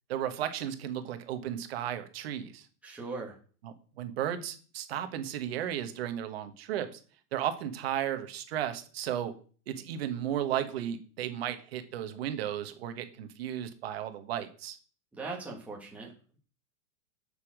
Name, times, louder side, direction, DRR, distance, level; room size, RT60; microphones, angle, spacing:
voice 1, 0.1-2.7 3.6-6.9 7.3-9.3 9.7-14.8, right 10 dB, 40° right, 8 dB, 1.4 m, -34 dB
voice 2, 2.8-3.3 15.1-16.4, right 3 dB, 5° right, -3 dB, 1.6 m, -40 dB
8.2 x 7.0 x 6.4 m, 0.41 s
supercardioid pair, 180°, 45 cm